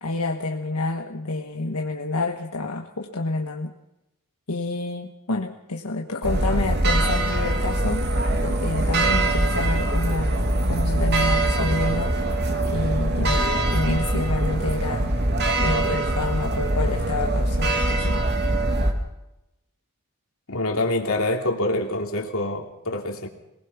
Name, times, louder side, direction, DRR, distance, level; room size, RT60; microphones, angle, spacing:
voice 1, 0.0-3.7 4.5-8.0 8.4-10.3 10.7-12.1 12.7-15.1 15.6-18.3, left 2 dB, 85° left, 2 dB, 1.5 m, -28 dB
sound 1, 6.2-18.9, right 1 dB, 50° right, 2.6 m, -23 dB
voice 2, 20.5-23.3, left 2 dB, 65° left, 2 dB, 2.9 m, -25 dB
22.5 x 20.0 x 6.0 m, 0.91 s
head